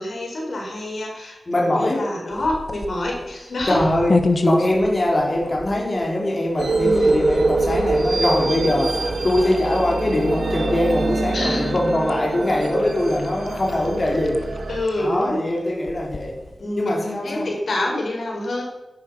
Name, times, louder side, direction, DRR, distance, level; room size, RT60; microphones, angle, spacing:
voice 1, 0.0-3.8 4.4-4.5 6.8-7.1 11.3-11.7 14.7-15.4 16.6-16.9 17.2-18.6, left 1 dB, 80° left, -1 dB, 4.8 m, -26 dB
voice 2, 1.5-2.1 3.7-14.5 15.0-16.3 16.8-17.5, left 1 dB, 40° left, -2 dB, 4.0 m, -22 dB
sound 1, 2.3-16.8, left 3 dB, 55° left, 1.3 m, -32 dB
sound 2, 6.6-14.8, right 3 dB, 85° right, 2.5 m, -24 dB
13.0 x 11.0 x 5.6 m, 1.1 s
wide cardioid pair, 85°, 0 cm